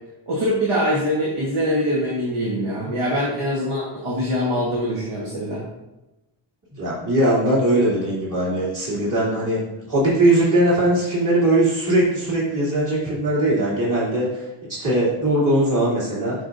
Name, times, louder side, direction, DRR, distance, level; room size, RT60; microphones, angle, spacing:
voice 1, 0.3-5.6, equal, 90° right, -5 dB, 1.4 m, -23 dB
voice 2, 6.7-16.3, right 1 dB, 40° right, -7 dB, 2.7 m, -20 dB
11.0 x 4.8 x 2.6 m, 0.99 s
wide cardioid pair, 75°, 49 cm